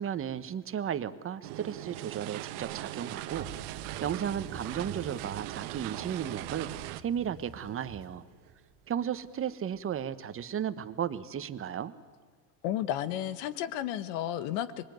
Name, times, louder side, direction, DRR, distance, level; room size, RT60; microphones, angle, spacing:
voice 1, 0.0-3.5 4.0-8.2 8.9-11.9, right 9 dB, 25° right, 13 dB, 1.2 m, -34 dB
sound 1, 1.4-7.0, right 16 dB, 65° right, 1.1 m, -40 dB
sound 2, 3.3-10.0, right 6 dB, 45° right, 1.7 m, -48 dB
voice 2, 12.6-14.9, left 11 dB, 65° left, 13 dB, 1.5 m, -32 dB
25.5 x 22.0 x 9.4 m, 1.5 s
supercardioid pair, 120°, 47 cm